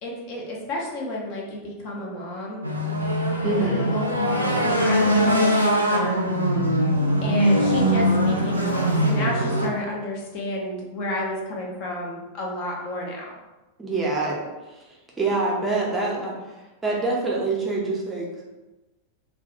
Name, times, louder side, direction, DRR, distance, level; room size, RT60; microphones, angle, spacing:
voice 1, 0.0-2.6 3.6-6.2 7.2-13.3, left 1 dB, 40° left, -2 dB, 0.5 m, -31 dB
sound 1, 2.6-9.7, equal, 90° right, 0.3 m, -21 dB
voice 2, 3.4-3.9 13.8-18.3, right 3 dB, 15° right, -3 dB, 0.6 m, -26 dB
2.2 x 2.1 x 2.7 m, 1.1 s
figure-of-eight pair, 90°, 0 cm